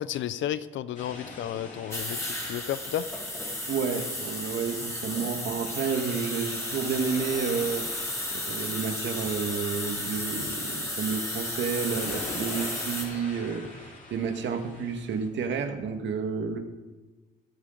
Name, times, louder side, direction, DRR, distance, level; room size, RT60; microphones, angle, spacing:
voice 1, 0.0-3.1, left 11 dB, 70° left, 16 dB, 0.6 m, -32 dB
sound 1, 0.9-15.3, left 2 dB, 40° left, 3.6 m, -45 dB
sound 2, 1.9-13.0, left 1 dB, 15° left, 3.5 m, -34 dB
voice 2, 3.7-7.9 8.5-16.6, right 6 dB, 70° right, 5 dB, 1.7 m, -30 dB
22.5 x 8.4 x 3.9 m, 1.2 s
cardioid pair, 90°, 20 cm